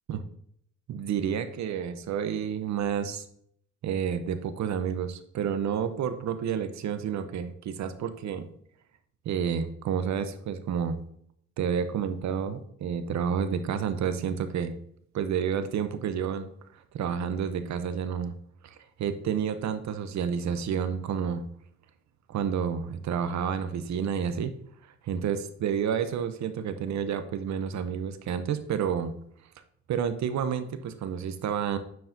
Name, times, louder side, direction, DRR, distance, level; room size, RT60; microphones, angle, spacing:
voice 1, 0.9-3.2 3.8-8.5 9.3-11.0 11.6-14.7 15.1-16.5 16.9-18.3 18.6-21.4 22.3-24.5 25.1-29.1 29.9-31.8, right 7 dB, 65° right, 11 dB, 0.7 m, -30 dB
9.3 x 4.7 x 2.7 m, 0.66 s
cardioid pair, 90°, 30 cm